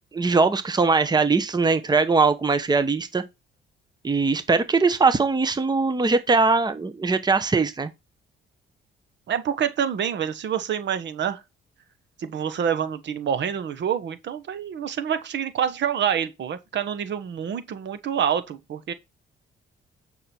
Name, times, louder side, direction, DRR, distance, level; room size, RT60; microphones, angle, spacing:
voice 1, 0.1-3.2 4.0-7.9, right 4 dB, 20° right, 1.0 m, -21 dB
voice 2, 9.3-11.4 12.2-18.9, right 8 dB, 65° right, 1.2 m, -27 dB
8.8 x 6.1 x 4.4 m
cardioid pair, 90°, 20 cm